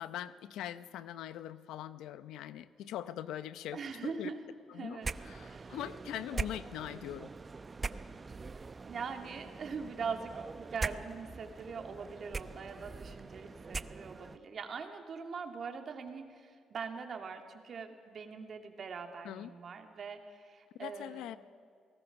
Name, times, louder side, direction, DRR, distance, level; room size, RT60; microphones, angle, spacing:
voice 1, 0.0-4.3 4.7-5.0 5.3-7.3 19.2-19.5 20.8-21.4, left 11 dB, 90° left, 14 dB, 0.7 m, -42 dB
voice 2, 3.7-4.4 4.8-5.1 5.4-5.8 8.8-21.3, right 5 dB, 55° right, 5 dB, 2.4 m, -42 dB
sound 1, 5.0-14.4, right 4 dB, 30° right, 0.7 m, -42 dB
28.0 x 19.0 x 6.0 m, 2.2 s
cardioid pair, 90°, 0 cm